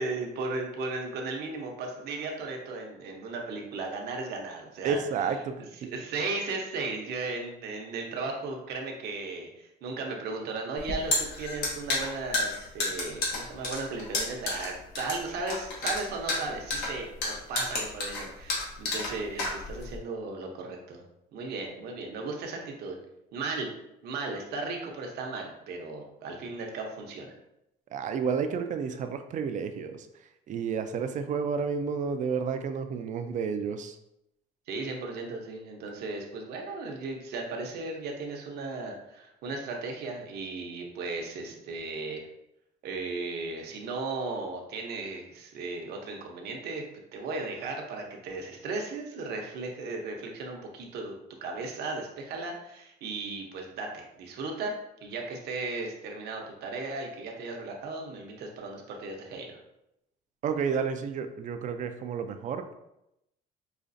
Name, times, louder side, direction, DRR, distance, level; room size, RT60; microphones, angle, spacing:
voice 1, 0.0-21.0 21.3-23.0 23.3-23.7 24.0-27.3 34.7-42.3 42.8-46.8 47.1-54.7 55.0-59.6, right 3 dB, 70° right, 1 dB, 0.8 m, -36 dB
voice 2, 4.8-5.9 27.9-30.0 30.5-34.0 60.4-62.7, right 6 dB, 50° right, 8 dB, 0.4 m, -31 dB
sound 1, 10.8-20.0, left 2 dB, 80° left, 1.2 m, -31 dB
5.0 x 2.4 x 2.6 m, 0.84 s
cardioid pair, 110°, 17 cm